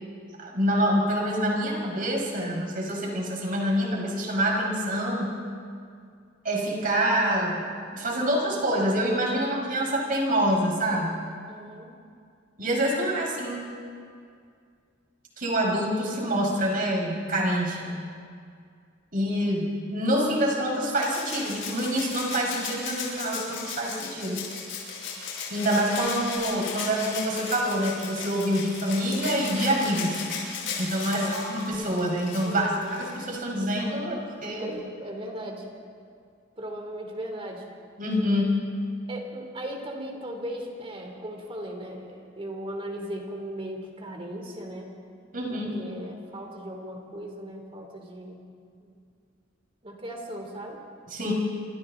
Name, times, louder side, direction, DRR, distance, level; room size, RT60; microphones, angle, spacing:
voice 1, 0.4-5.3 6.4-7.6 7.9-11.2 12.6-13.7 15.4-18.0 19.1-24.5 25.5-30.2 30.8-32.7 33.0-34.7 38.0-38.6 45.3-45.7 51.1-51.3, equal, 45° right, -1 dB, 5.4 m, -26 dB
voice 2, 11.5-11.9 31.1-31.4 32.4-33.1 34.6-35.6 36.6-37.6 39.1-44.9 45.5-48.4 48.8-49.0 49.8-50.8, right 1 dB, 30° right, 2 dB, 3.3 m, -37 dB
Rattle (instrument), 21.0-33.3 34.7-34.8, left 5 dB, 80° left, 6.6 m, -36 dB
27.5 x 25.5 x 4.0 m, 2.3 s
head